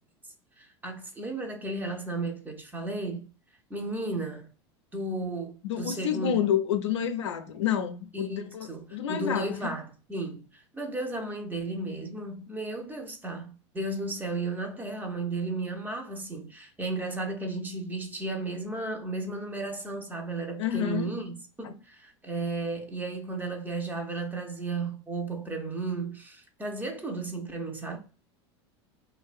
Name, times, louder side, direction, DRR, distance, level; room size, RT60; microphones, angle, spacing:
voice 1, 0.6-3.3 3.7-4.5 4.9-6.4 8.1-28.0, right 2 dB, 10° right, 0.6 m, -34 dB
voice 2, 5.6-9.7 20.6-21.1, left 9 dB, 90° left, 0.4 m, -29 dB
2.5 x 2.1 x 2.3 m
hypercardioid pair, 95°, 14 cm